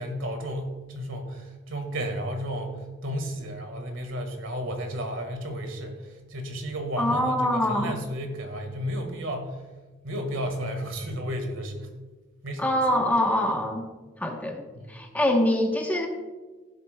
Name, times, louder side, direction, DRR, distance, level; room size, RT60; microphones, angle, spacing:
voice 1, 0.0-9.6 10.0-11.9 12.4-12.8 14.7-15.1, equal, 75° right, 5 dB, 1.7 m, -33 dB
voice 2, 7.0-7.9 12.6-13.9 14.2-16.1, left 1 dB, 10° left, 1 dB, 1.0 m, -24 dB
16.0 x 8.0 x 2.2 m, 1.3 s
head